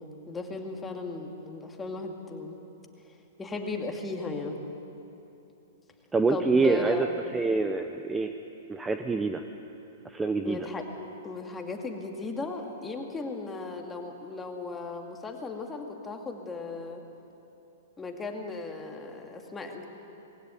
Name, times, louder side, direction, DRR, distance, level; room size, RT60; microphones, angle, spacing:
voice 1, 0.0-2.6 3.0-3.1 3.4-4.6 6.3-7.0 10.4-10.8 11.2-17.0 18.0-19.9, left 3 dB, 15° left, 2 dB, 2.4 m, -36 dB
voice 2, 6.1-7.1 7.3-8.3 8.7-9.4 10.1-10.6, right 3 dB, 10° right, 7 dB, 0.8 m, -25 dB
20.5 x 16.5 x 9.1 m, 2.9 s
hypercardioid pair, 125°, 0 cm